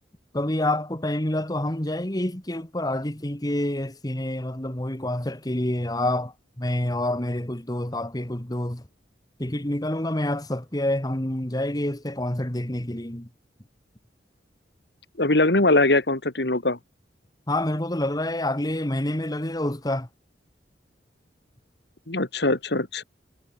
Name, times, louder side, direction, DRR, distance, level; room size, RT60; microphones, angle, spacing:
voice 1, 0.3-8.9 9.4-13.3 17.5-20.1, left 1 dB, 20° left, 1.8 m, -27 dB
voice 2, 15.2-16.8 22.1-23.0, left 2 dB, 65° left, 2.3 m, -21 dB
head